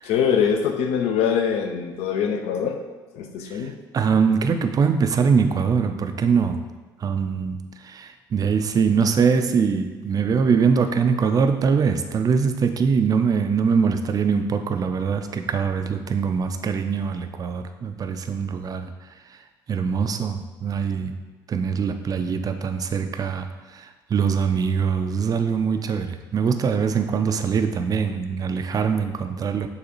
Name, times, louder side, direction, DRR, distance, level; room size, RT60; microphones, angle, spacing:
voice 1, 0.0-2.8 3.1-3.7, left 7 dB, 60° left, 5 dB, 0.5 m, -23 dB
voice 2, 3.9-6.6 7.0-18.9 19.7-21.2 21.5-29.7, right 6 dB, 30° right, 8 dB, 0.4 m, -23 dB
6.6 x 2.4 x 3.0 m, 1.3 s
hypercardioid pair, 60°, 12 cm